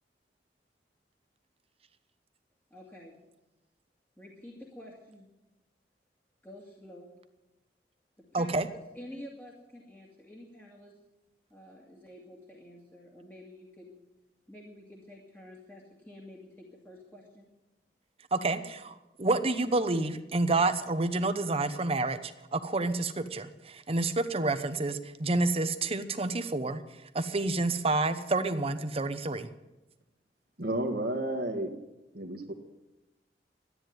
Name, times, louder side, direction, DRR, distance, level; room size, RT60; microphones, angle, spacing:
voice 1, 2.7-3.2 4.2-5.3 6.4-7.1 8.2-10.9 11.5-14.0 14.5-17.5, left 1 dB, 10° left, -3 dB, 2.2 m, -49 dB
voice 2, 8.3-8.7 18.3-26.8 27.1-29.5, right 2 dB, 35° right, 10 dB, 1.0 m, -29 dB
voice 3, 30.6-31.7 32.1-32.5, right 1 dB, 60° right, 3 dB, 1.7 m, -31 dB
13.0 x 9.8 x 9.4 m, 1.0 s
head